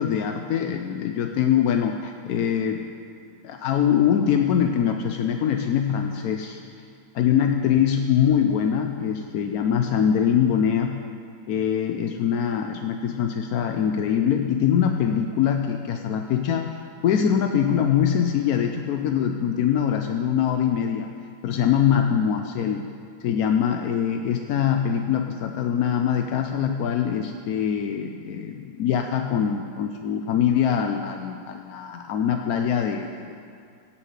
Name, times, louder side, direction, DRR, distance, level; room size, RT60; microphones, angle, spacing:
voice 1, 0.0-2.9 3.4-6.6 7.1-11.0 11.5-16.7 17.0-21.1 21.4-22.9 23.2-33.4, left 8 dB, 70° left, 5 dB, 0.9 m, -23 dB
16.5 x 5.9 x 8.1 m, 2.3 s
omnidirectional pair, 2.2 m